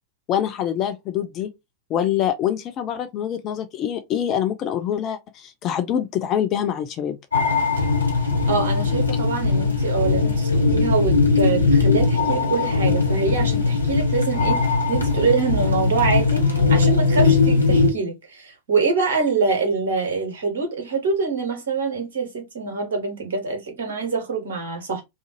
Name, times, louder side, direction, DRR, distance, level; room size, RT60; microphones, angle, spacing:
voice 1, 0.3-1.5 1.9-7.2, left 10 dB, 35° left, 0.4 m, -25 dB
sound 1, 7.3-17.9, left 4 dB, 85° left, 0.8 m, -19 dB
voice 2, 8.5-25.0, right 4 dB, 60° right, 1.1 m, -25 dB
2.5 x 2.4 x 2.7 m
figure-of-eight pair, 90°, 0 cm